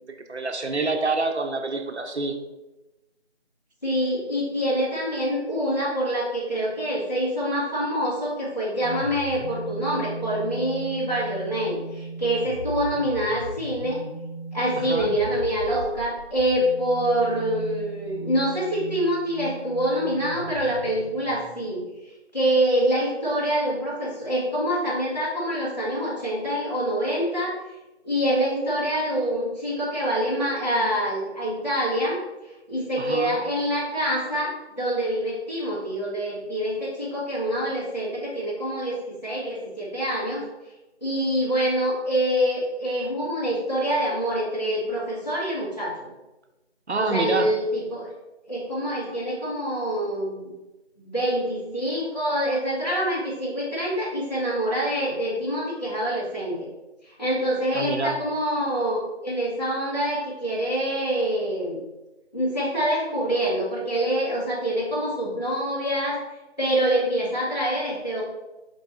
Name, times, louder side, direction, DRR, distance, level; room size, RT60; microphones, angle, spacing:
voice 1, 0.3-2.3 14.8-15.2 33.0-33.4 46.9-47.5 57.7-58.2, right 3 dB, 75° right, 5 dB, 0.7 m, -27 dB
voice 2, 3.8-14.0 14.5-21.8 22.3-27.5 28.0-32.2 32.7-40.4 41.0-46.1 47.0-48.1 48.5-50.5 51.0-56.7 57.0-61.8 62.3-66.2 66.6-68.2, equal, 40° left, -8 dB, 1.4 m, -26 dB
sound 1, 8.8-21.7, right 2 dB, 55° left, 0.6 m, -37 dB
4.5 x 2.7 x 4.4 m, 1.0 s
figure-of-eight pair, 175°, 34 cm